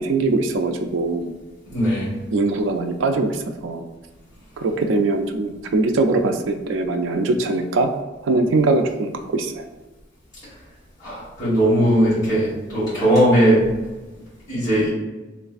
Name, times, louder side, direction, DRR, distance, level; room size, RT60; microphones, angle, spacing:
voice 1, 0.0-1.3 2.3-3.9 4.6-7.9 8.2-9.6, right 3 dB, 75° right, 5 dB, 0.3 m, -21 dB
voice 2, 1.7-2.2 11.0-13.6 14.5-14.9, equal, 20° left, -11 dB, 1.4 m, -18 dB
3.3 x 3.1 x 2.4 m, 1.2 s
head